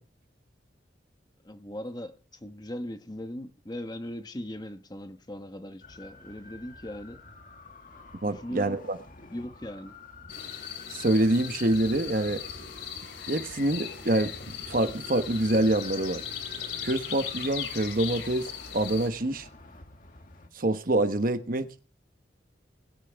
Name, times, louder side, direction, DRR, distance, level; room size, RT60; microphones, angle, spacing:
voice 1, 1.4-7.2 8.2-8.8 9.3-9.9, left 1 dB, 20° left, 1.1 m, -39 dB
sound 1, 5.8-20.5, left 2 dB, 45° left, 1.9 m, -49 dB
voice 2, 8.2-9.0 10.9-12.4 13.3-14.3 14.7-16.2 16.8-18.5 18.7-19.5 20.5-21.7, right 1 dB, 50° right, 1.1 m, -26 dB
sound 2, 10.3-19.1, left 8 dB, 85° left, 3.4 m, -38 dB
20.5 x 10.0 x 3.5 m
head